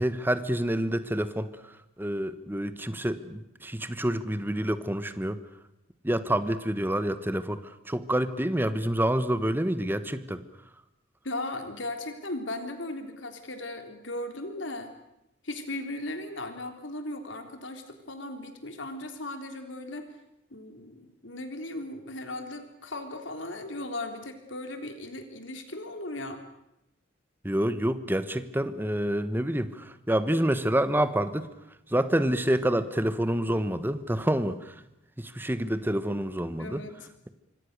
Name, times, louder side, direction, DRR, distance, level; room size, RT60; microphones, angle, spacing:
voice 1, 0.0-1.5 2.0-5.4 6.0-10.4 27.4-31.5 31.9-34.7 35.2-36.8, right 1 dB, 10° right, 12 dB, 1.3 m, -27 dB
voice 2, 11.2-14.9 15.4-20.1 20.5-26.4 36.6-37.1, left 2 dB, 80° left, 6 dB, 3.5 m, -37 dB
26.5 x 25.0 x 6.8 m, 0.83 s
head